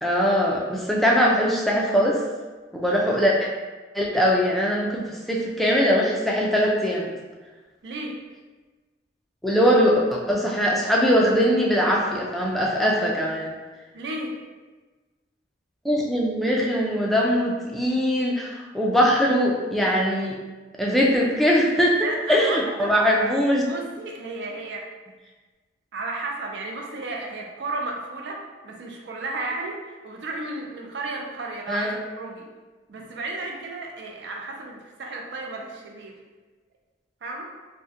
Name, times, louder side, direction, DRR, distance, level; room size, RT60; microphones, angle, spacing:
voice 1, 0.0-2.2 2.7-3.5 3.9-7.1 9.4-13.6 15.8-20.4 20.8-23.6 31.7-32.0, equal, ahead, -3 dB, 0.3 m, -21 dB
voice 2, 7.8-8.2 13.9-14.3 22.0-23.1 23.6-24.8 25.9-32.5 32.9-36.2 37.2-37.5, right 2 dB, 65° right, 0 dB, 0.4 m, -33 dB
3.5 x 2.1 x 2.7 m, 1.3 s
head